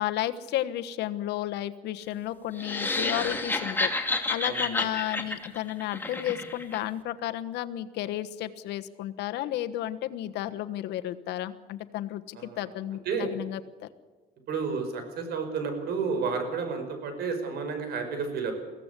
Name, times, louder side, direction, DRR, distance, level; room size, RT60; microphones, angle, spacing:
voice 1, 0.0-3.9 4.3-13.9, left 13 dB, 80° left, 11 dB, 1.3 m, -32 dB
sound 1, 2.6-6.8, left 3 dB, 10° left, 2.5 m, -30 dB
voice 2, 4.4-4.9 12.3-12.7 13.0-13.3 14.5-18.5, right 5 dB, 70° right, 7 dB, 5.5 m, -31 dB
23.0 x 16.0 x 8.3 m, 1.3 s
cardioid pair, 110°, 17 cm